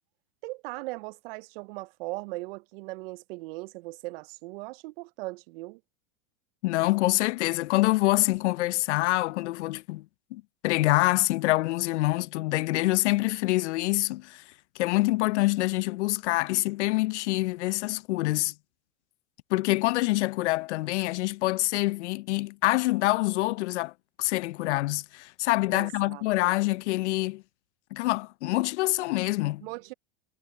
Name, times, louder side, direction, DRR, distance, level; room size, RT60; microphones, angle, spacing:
voice 1, 0.4-5.8 25.7-26.5 29.6-29.9, right 23 dB, 60° right, 0.5 m, -39 dB
voice 2, 6.6-10.0 10.3-14.4 14.8-18.5 19.5-23.9 24.2-27.4 27.9-29.7, left 19 dB, 85° left, 0.5 m, -26 dB
supercardioid pair, 140°, 34 cm